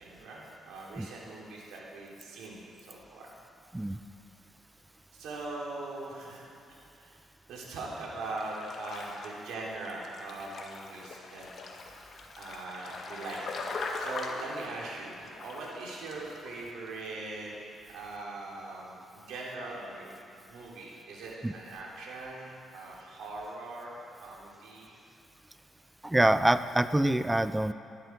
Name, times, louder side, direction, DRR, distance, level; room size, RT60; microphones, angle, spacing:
voice 1, 0.0-2.6 2.9-3.3 5.1-6.5 7.0-7.2 7.5-11.5 12.4-13.4 14.0-17.5 17.9-20.1 20.5-23.9 24.2-25.0, right 2 dB, 85° right, -4 dB, 3.6 m, -41 dB
sound 1, 8.1-16.5 16.8-16.9, left 3 dB, 55° left, 1.8 m, -41 dB
voice 2, 26.0-27.7, right 1 dB, 10° right, 12 dB, 0.5 m, -25 dB
19.5 x 11.5 x 4.7 m, 2.5 s
cardioid pair, 90°, 0 cm